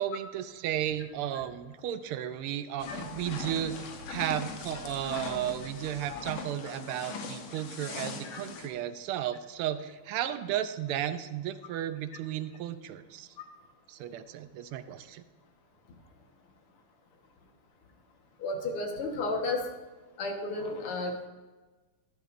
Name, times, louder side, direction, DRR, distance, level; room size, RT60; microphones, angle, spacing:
voice 1, 0.0-13.3 13.9-15.2, right 11 dB, 85° right, 11 dB, 1.5 m, -34 dB
sound 1, 2.8-8.7, left 4 dB, 70° left, 1.8 m, -40 dB
voice 2, 18.4-19.6 20.2-21.3, left 2 dB, 90° left, 3 dB, 2.3 m, -32 dB
12.0 x 12.0 x 2.5 m, 1.2 s
omnidirectional pair, 2.4 m